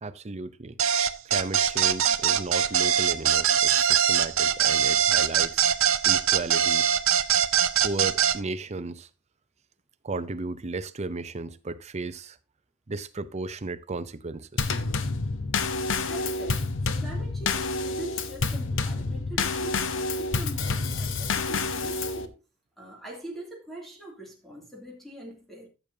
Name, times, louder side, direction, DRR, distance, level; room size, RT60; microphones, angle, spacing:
voice 1, 0.0-0.8 1.2-5.6 6.0-6.9 7.8-9.1 10.0-12.4 12.9-14.7, right 3 dB, 30° right, 0.6 m, -35 dB
sound 1, 0.8-8.4, right 8 dB, 70° right, 0.7 m, -22 dB
Drum kit / Snare drum / Bass drum, 14.6-22.3, left 3 dB, 65° left, 0.9 m, -28 dB
voice 2, 16.0-22.4 22.8-25.7, right 1 dB, ahead, 2.7 m, -43 dB
14.0 x 6.9 x 2.7 m
head